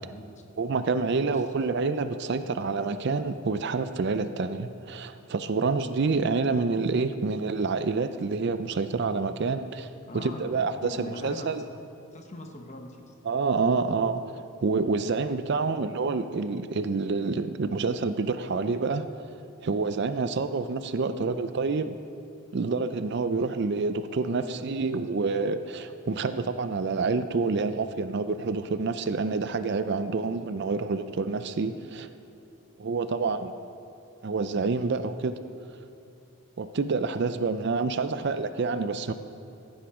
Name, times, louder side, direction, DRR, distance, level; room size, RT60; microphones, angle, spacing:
voice 1, 0.6-9.9 10.1-11.6 13.3-14.2 14.6-19.1 19.6-22.0 22.5-32.1 32.8-33.5 34.2-35.4 36.6-39.1, right 4 dB, 50° right, 11 dB, 0.4 m, -28 dB
voice 2, 1.1-1.4 10.1-11.5 12.1-13.1 15.6-15.7 21.1-21.3 24.3-24.5 33.1-33.2 38.0-38.3, left 1 dB, 30° left, 4 dB, 1.0 m, -42 dB
15.0 x 8.8 x 4.9 m, 2.6 s
head